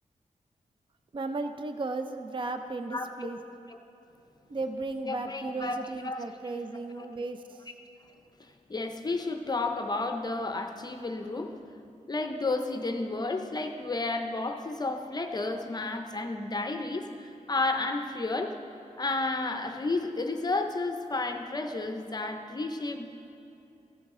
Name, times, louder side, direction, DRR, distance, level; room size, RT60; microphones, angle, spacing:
voice 1, 1.1-3.4 4.5-7.7, right 3 dB, 40° right, 7 dB, 0.4 m, -35 dB
voice 2, 2.9-3.3 5.0-6.2 7.0-7.1 8.7-11.6 12.1-18.6 19.0-23.1, left 2 dB, 30° left, 5 dB, 0.5 m, -32 dB
15.0 x 7.9 x 3.7 m, 2.8 s
wide cardioid pair, 125°, 13 cm